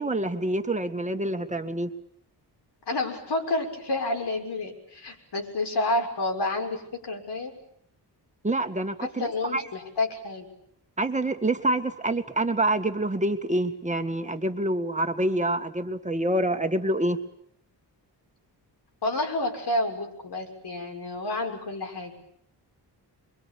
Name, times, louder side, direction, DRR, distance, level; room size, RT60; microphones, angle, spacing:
voice 1, 0.0-1.9 8.4-9.7 11.0-17.2, right 1 dB, 15° right, 7 dB, 2.0 m, -27 dB
voice 2, 2.9-7.5 9.0-10.5 19.0-22.1, left 2 dB, 65° left, 2 dB, 6.4 m, -29 dB
28.0 x 24.0 x 8.6 m, 0.73 s
wide cardioid pair, 140°, 43 cm